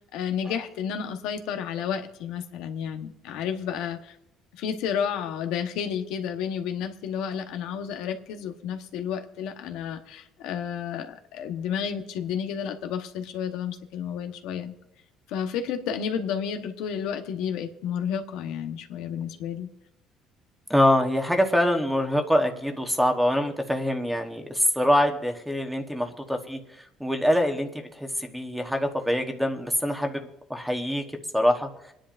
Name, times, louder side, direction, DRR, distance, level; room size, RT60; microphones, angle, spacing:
voice 1, 0.1-4.2 4.6-14.7 15.3-19.7, left 8 dB, 85° left, 6 dB, 1.1 m, -31 dB
voice 2, 20.7-26.6 27.0-27.7 28.0-31.0 31.3-31.7, equal, ahead, 4 dB, 1.1 m, -24 dB
27.5 x 10.0 x 2.6 m, 0.83 s
cardioid pair, 155°, 0 cm